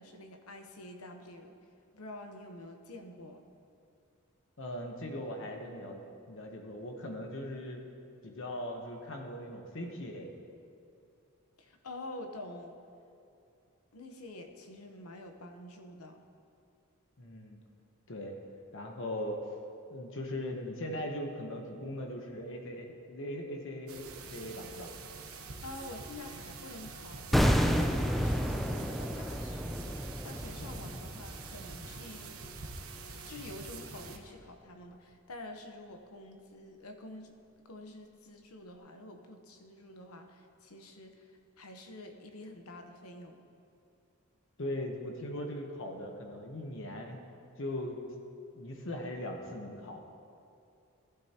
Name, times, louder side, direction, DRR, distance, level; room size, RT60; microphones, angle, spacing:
voice 1, 0.0-1.6 1.9-3.4 11.6-12.7 13.9-16.2 25.2-32.4 33.3-37.4 37.6-41.3 41.6-43.4, left 1 dB, 85° left, 5 dB, 1.0 m, -48 dB
voice 2, 4.6-6.0 6.3-7.8 8.2-10.3 17.2-17.6 18.1-18.3 18.7-19.4 19.9-24.0 24.3-24.9 44.6-47.2 47.6-48.0 48.5-50.0, left 1 dB, 60° left, 2 dB, 1.0 m, -39 dB
sound 1, 23.9-34.2, right 4 dB, 80° right, 1.0 m, -46 dB
sound 2, 27.3-32.3 32.6-32.8, equal, ahead, 0.4 m, -30 dB
15.0 x 11.5 x 2.9 m, 2.6 s
head